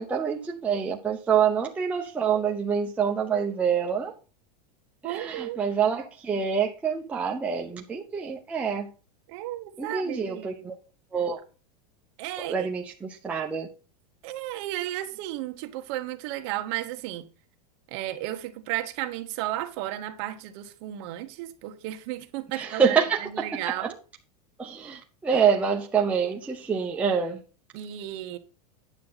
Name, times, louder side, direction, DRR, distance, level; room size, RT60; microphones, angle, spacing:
voice 1, 0.0-4.1 5.0-8.9 9.8-10.7 11.1-11.4 12.4-13.7 22.6-23.2 23.5-23.9 24.6-27.4, right 6 dB, 5° right, 0.7 m, -26 dB
voice 2, 5.0-5.6 9.3-10.6 12.2-12.7 14.2-17.2 17.9-23.0 23.2-24.0 25.3-25.4 27.7-28.4, right 14 dB, 40° right, 1.1 m, -34 dB
9.7 x 7.1 x 4.1 m
supercardioid pair, 170°, 20 cm